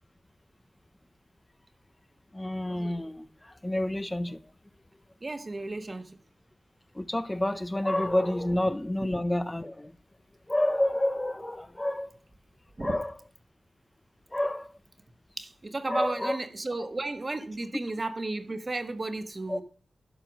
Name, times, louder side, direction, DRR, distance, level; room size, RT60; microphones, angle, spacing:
voice 1, 2.3-4.4 6.9-9.9 10.5-12.1 12.8-13.2 14.3-14.7 15.9-16.4 19.5-19.6, left 1 dB, 20° left, 0.5 m, -29 dB
voice 2, 5.2-6.2 12.8-12.9 15.4-19.6, right 2 dB, 35° right, 1.4 m, -33 dB
12.0 x 4.8 x 6.2 m
cardioid pair, 65°, 0 cm